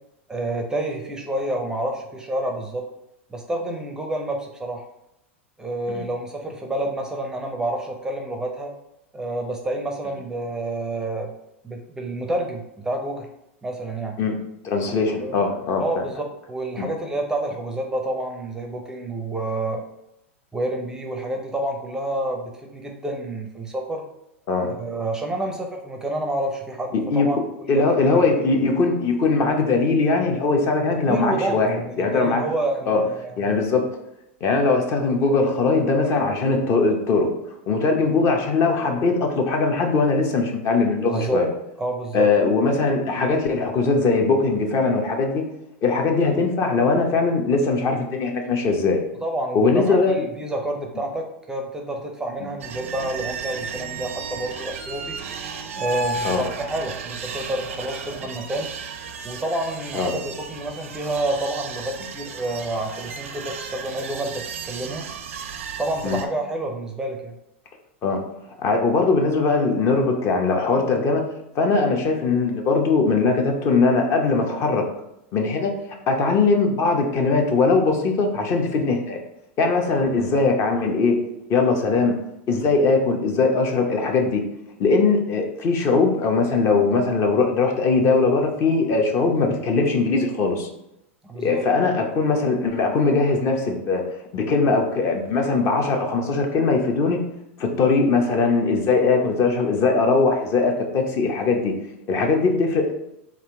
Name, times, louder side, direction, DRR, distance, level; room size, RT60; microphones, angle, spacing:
voice 1, 0.3-2.8 3.3-4.8 5.6-8.7 9.1-11.3 11.6-13.3 13.6-14.2 15.2-15.4 15.8-19.8 20.5-24.0 24.8-27.4 27.7-28.2 31.1-33.5 41.0-41.4 41.8-42.3 49.2-55.2 55.8-58.7 59.2-65.1 65.8-67.3 91.2-91.6, right 1 dB, 10° right, 2 dB, 0.5 m, -29 dB
voice 2, 14.6-15.8 16.8-16.9 24.5-24.7 26.9-27.3 27.7-32.4 32.9-33.0 33.4-33.9 34.4-37.3 37.7-41.5 42.1-45.4 45.8-49.0 49.5-50.3 52.4-52.5 56.2-56.4 59.9-60.1 66.0-66.2 68.0-68.2 68.6-71.3 71.5-74.8 75.3-75.7 76.1-79.2 79.6-81.2 81.5-82.1 82.5-84.4 84.8-90.7 91.4-94.1 94.3-97.2 97.6-101.7 102.1-102.9, left 3 dB, 40° left, 3 dB, 0.8 m, -20 dB
sound 1, 52.6-66.3, right 4 dB, 90° right, 0.5 m, -34 dB
3.6 x 2.5 x 4.4 m, 0.83 s
hypercardioid pair, 120°, 7 cm